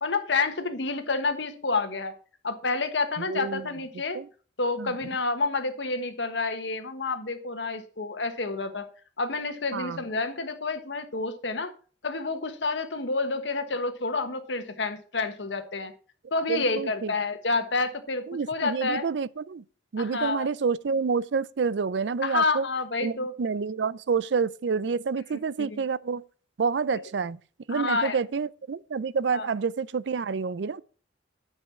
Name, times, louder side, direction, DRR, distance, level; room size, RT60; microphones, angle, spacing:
voice 1, 0.0-2.1 2.4-4.2 4.6-8.9 9.2-11.7 12.0-15.9 16.3-19.0 20.0-20.5 22.2-23.3 25.6-25.8 26.9-27.0 27.7-28.2 29.3-29.5, left 3 dB, 75° left, 1.4 m, -29 dB
voice 2, 3.2-3.7 4.1-4.3 4.8-5.0 9.7-10.0 16.5-17.1 18.3-19.6 19.9-22.7 23.0-26.2 26.6-27.4 27.7-30.8, right 5 dB, 70° right, 0.4 m, -28 dB
10.0 x 5.5 x 5.8 m
head